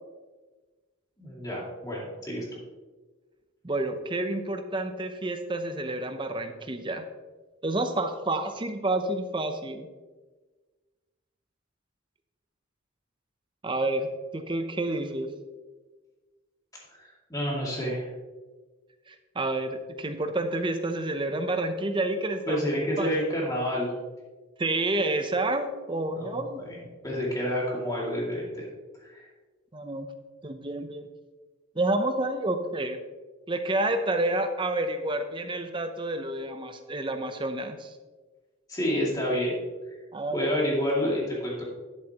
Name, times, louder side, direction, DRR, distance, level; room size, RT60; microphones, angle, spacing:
voice 1, 1.2-2.4 16.9-18.1 22.5-23.9 26.1-26.4 26.7-28.7 29.0-29.3 38.7-39.6 40.3-41.6, equal, 15° left, -4 dB, 2.3 m, -29 dB
voice 2, 3.6-7.1 7.6-9.9 13.6-15.3 19.1-22.7 23.0-23.1 24.6-26.6 29.7-30.1 30.4-31.1 31.8-33.0 33.5-37.9 40.1-40.5, right 2 dB, 25° right, 7 dB, 0.6 m, -29 dB
11.0 x 7.8 x 2.9 m, 1.3 s
head